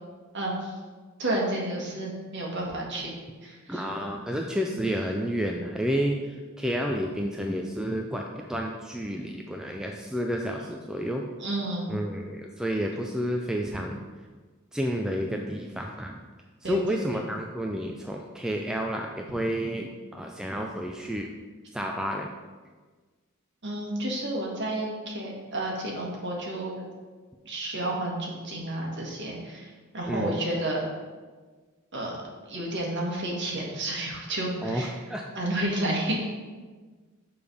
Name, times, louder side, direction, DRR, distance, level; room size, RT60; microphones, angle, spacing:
voice 1, 0.3-0.7 1.2-3.1 3.4-3.8 11.4-11.9 16.6-17.2 23.6-26.8 27.4-30.8 31.9-32.1 32.5-34.9 35.3-36.3, right 1 dB, 55° right, -2 dB, 1.5 m, -31 dB
voice 2, 3.7-11.2 11.9-14.0 14.7-16.2 16.6-21.3 21.7-22.3 30.1-30.4 34.6-35.3, equal, 5° right, 1 dB, 0.3 m, -30 dB
6.8 x 3.4 x 5.3 m, 1.4 s
head